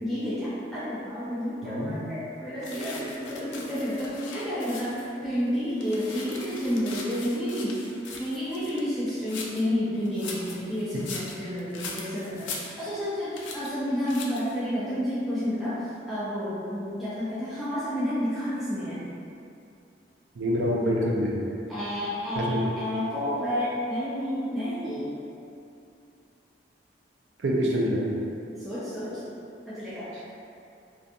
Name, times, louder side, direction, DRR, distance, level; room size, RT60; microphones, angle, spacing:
voice 1, 0.0-7.7 8.2-15.7 16.1-19.0 21.7-25.2 28.5-29.2 29.7-30.1, equal, ahead, -13 dB, 0.4 m, -30 dB
voice 2, 1.6-2.0 10.9-11.0 20.3-21.4 22.4-22.6 27.4-28.1 30.1-30.2, equal, 85° right, -3 dB, 0.4 m, -26 dB
sound 1, 2.6-5.1 5.5-9.7 10.0-13.1 13.4-13.7 14.1-14.6, left 4 dB, 85° left, 0.4 m, -40 dB
2.5 x 2.3 x 2.6 m, 2.6 s
head